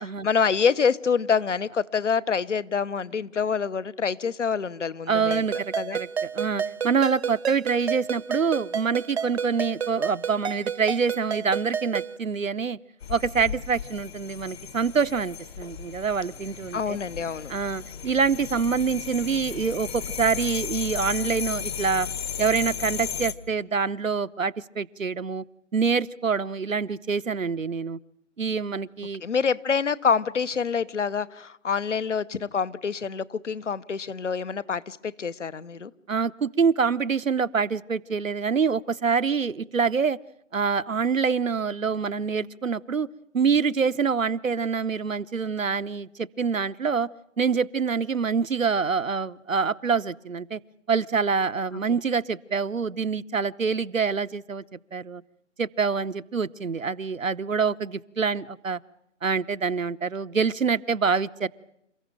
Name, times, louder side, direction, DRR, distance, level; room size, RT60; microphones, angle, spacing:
voice 1, 0.0-5.5 5.7-6.0 16.7-17.5 29.2-35.9 51.9-52.0, left 6 dB, 65° left, 1.1 m, -26 dB
voice 2, 5.1-12.8 13.1-17.0 17.5-22.1 22.4-25.4 25.7-28.0 28.4-29.2 36.1-40.2 40.5-43.1 43.3-47.1 47.4-50.6 50.9-54.6 54.9-55.2 55.6-58.8 59.2-61.5, right 5 dB, 85° right, 0.9 m, -26 dB
Ringtone, 5.3-12.2, right 7 dB, 55° right, 0.9 m, -31 dB
sound 1, 13.0-23.3, left 8 dB, 50° left, 1.7 m, -35 dB
28.5 x 15.0 x 9.1 m
figure-of-eight pair, 140°, 39 cm